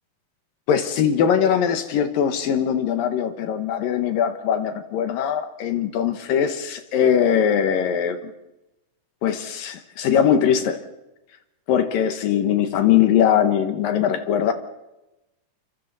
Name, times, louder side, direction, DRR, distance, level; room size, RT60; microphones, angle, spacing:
voice 1, 0.7-8.2 9.2-10.8 11.7-14.5, left 8 dB, 75° left, 2.9 m, -21 dB
29.5 x 24.5 x 4.1 m
omnidirectional pair, 4.2 m